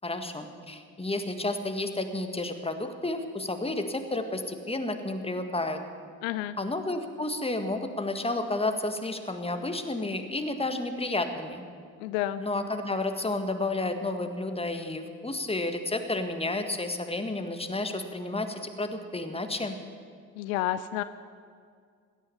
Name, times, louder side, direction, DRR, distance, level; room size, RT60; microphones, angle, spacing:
voice 1, 0.0-5.8 6.6-11.7 12.4-19.8, left 2 dB, 15° left, 7 dB, 1.8 m, -31 dB
voice 2, 6.2-6.5 12.0-12.4 20.4-21.0, left 14 dB, 75° left, 14 dB, 0.6 m, -30 dB
16.5 x 11.5 x 6.9 m, 2.1 s
hypercardioid pair, 50°, 42 cm